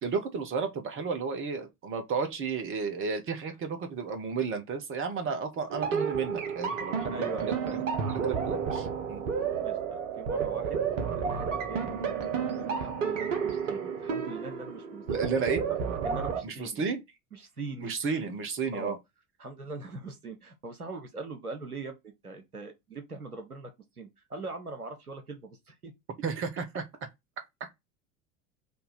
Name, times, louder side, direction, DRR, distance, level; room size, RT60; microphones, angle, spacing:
voice 1, 0.0-7.8 8.2-9.2 15.1-15.6 16.4-17.0 17.8-19.0 26.2-26.8 27.6-27.7, right 5 dB, 30° right, 1.0 m, -33 dB
sound 1, 5.7-16.4, right 6 dB, 60° right, 1.1 m, -31 dB
voice 2, 7.1-7.8 9.6-10.8 11.1-15.0 16.0-16.8 17.3-17.9 18.7-18.9 19.4-25.9, right 3 dB, 90° right, 0.9 m, -41 dB
3.5 x 2.7 x 4.2 m
figure-of-eight pair, 70°, 43 cm